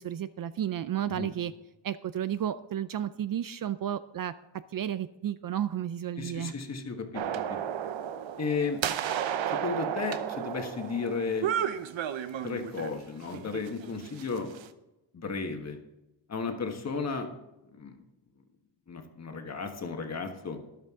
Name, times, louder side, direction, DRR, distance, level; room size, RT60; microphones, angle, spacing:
voice 1, 0.0-1.5 1.8-4.3 4.7-6.5, right 10 dB, 50° right, 13 dB, 0.4 m, -32 dB
voice 2, 6.2-7.6 8.4-8.8 9.5-11.5 12.4-14.5 15.1-15.8 16.3-17.3 17.7-18.0 18.9-20.6, left 5 dB, 35° left, 5 dB, 1.4 m, -34 dB
sound 1, 7.1-12.9 13.3-14.7, right 9 dB, 75° right, 0.9 m, -33 dB
13.0 x 11.5 x 3.7 m, 0.96 s
wide cardioid pair, 160°, 46 cm